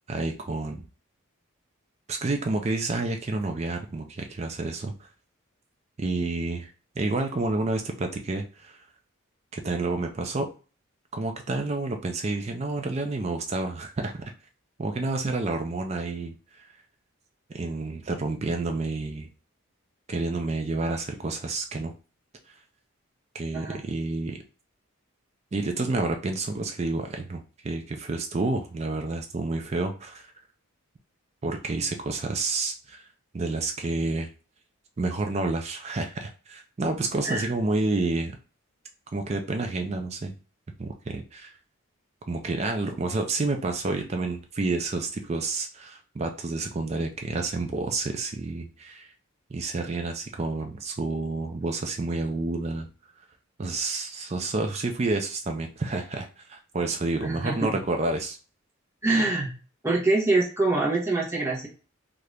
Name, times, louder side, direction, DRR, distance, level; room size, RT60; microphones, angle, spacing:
voice 1, 0.1-0.9 2.1-5.1 6.0-6.7 7.0-8.8 9.5-10.5 11.1-14.2 14.8-16.3 17.5-19.3 20.1-21.9 23.3-24.4 25.5-30.3 31.4-33.1 33.3-34.3 35.0-38.4 39.1-40.3 40.8-41.5 42.3-49.1 49.5-52.9 53.6-58.4, right 3 dB, 30° right, 5 dB, 0.3 m, -29 dB
voice 2, 57.2-57.8 59.0-59.5 59.8-61.7, right 2 dB, 10° right, -4 dB, 1.0 m, -25 dB
2.8 x 2.5 x 3.3 m, 0.35 s
head